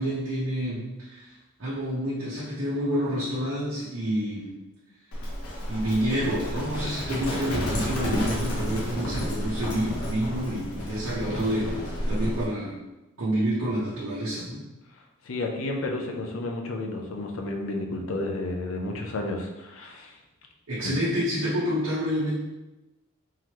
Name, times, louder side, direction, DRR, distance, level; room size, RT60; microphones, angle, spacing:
voice 1, 0.0-4.5 5.7-11.7 12.1-12.7 13.2-14.6 20.7-22.4, equal, 70° right, -9 dB, 0.9 m, -28 dB
Livestock farm animals working animals, 5.1-12.5, equal, 90° left, 1.0 m, -31 dB
voice 2, 15.2-20.2 20.8-20.9, left 2 dB, 65° left, 2 dB, 0.6 m, -31 dB
3.8 x 3.1 x 2.9 m, 1.0 s
head